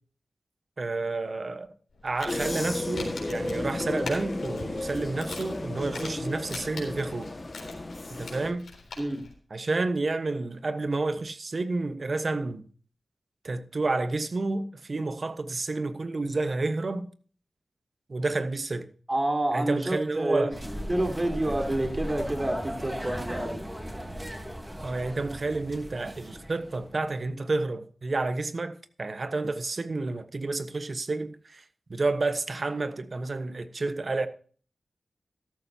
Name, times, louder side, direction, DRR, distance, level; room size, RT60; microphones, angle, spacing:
voice 1, 0.8-1.7 2.0-7.3 8.1-8.6 9.5-12.6 13.4-17.1 18.1-18.9 19.5-20.6 24.8-28.7 29.0-31.6 31.9-34.3, right 3 dB, 60° right, 1.1 m, -30 dB
Crumpling crinkling, 1.9-9.3, left 3 dB, 90° left, 3.9 m, -43 dB
sound 1, 2.2-8.5, left 2 dB, 40° left, 1.7 m, -34 dB
voice 2, 19.1-20.5 20.9-23.6, right 1 dB, 30° right, 3.9 m, -28 dB
sound 2, 20.5-27.2, equal, 10° right, 3.7 m, -38 dB
13.5 x 12.5 x 2.8 m
cardioid pair, 40°, 0 cm